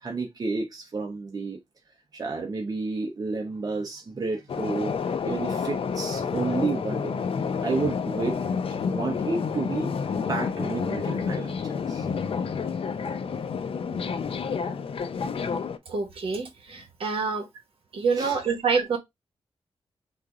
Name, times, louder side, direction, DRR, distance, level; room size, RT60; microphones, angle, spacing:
voice 1, 0.0-1.6 2.1-4.9 5.2-7.1 7.6-8.6 8.9-9.9 10.3-12.1 13.9-14.0 18.1-18.4, right 3 dB, 40° right, 0.8 m, -31 dB
sound 1, 4.5-15.8, left 6 dB, 65° left, 0.6 m, -29 dB
voice 2, 15.9-17.5 17.9-19.0, right 5 dB, 65° right, 1.2 m, -27 dB
3.9 x 2.6 x 4.7 m
wide cardioid pair, 130°, 10 cm